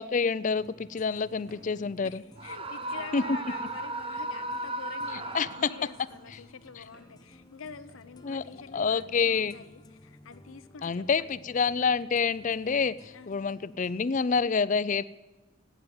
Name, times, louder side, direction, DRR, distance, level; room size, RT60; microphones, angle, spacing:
voice 1, 0.0-2.2 3.1-3.2 5.3-5.5 8.2-8.4 8.7-9.5 10.8-15.0, left 5 dB, 40° left, 17 dB, 0.4 m, -27 dB
sound 1, 0.5-14.4, left 1 dB, 20° left, 0.8 m, -55 dB
Walk footsteps, 1.5-1.8 2.4-2.5 3.3-3.5 4.2-4.4 5.1-5.3 6.0-6.2 6.9-7.1 7.9-8.1 8.8-8.9, right 1 dB, 85° right, 4.0 m, -57 dB
voice 2, 2.0-11.4 13.1-13.3, left 5 dB, 85° left, 10 dB, 0.7 m, -47 dB
Screaming, 2.4-6.1, right 2 dB, 25° right, 0.8 m, -36 dB
12.0 x 9.1 x 9.3 m, 1.2 s
head